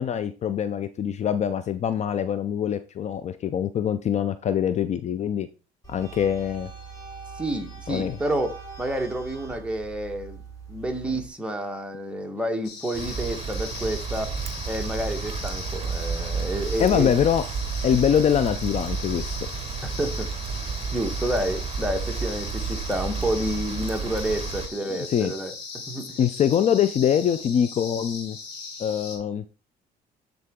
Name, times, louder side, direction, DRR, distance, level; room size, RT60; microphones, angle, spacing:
voice 1, 0.0-5.5 5.9-6.7 7.9-8.2 16.8-17.4 17.8-19.4 24.9-25.3 26.2-28.4 28.8-29.4, left 9 dB, 40° left, 0.4 m, -24 dB
sound 1, 5.8-11.3, right 5 dB, 20° left, 3.6 m, -42 dB
voice 2, 7.4-10.4 10.7-14.4 14.7-17.1 20.0-20.3 20.9-25.5 25.9-26.2, right 1 dB, 5° right, 1.3 m, -29 dB
sound 2, 12.6-29.2, left 5 dB, 85° left, 2.0 m, -39 dB
sound 3, 12.9-24.7, right 5 dB, 35° right, 1.1 m, -31 dB
9.3 x 3.9 x 3.6 m
cardioid pair, 110°, 17 cm